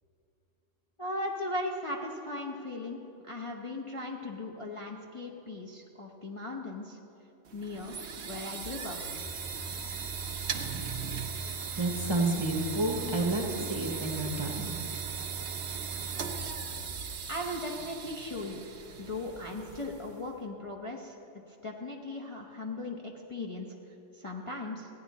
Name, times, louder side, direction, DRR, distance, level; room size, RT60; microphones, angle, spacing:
voice 1, 1.0-7.0 7.5-7.9 8.2-9.2 17.3-18.6 19.0-21.2 21.6-23.7 24.1-24.9, left 2 dB, 30° left, -2 dB, 0.7 m, -38 dB
sound 1, 7.5-20.3, right 6 dB, 65° right, 1.0 m, -38 dB
voice 2, 11.8-14.7, right 2 dB, 25° right, 1 dB, 0.9 m, -30 dB
15.0 x 10.0 x 4.1 m, 2.9 s
omnidirectional pair, 1.3 m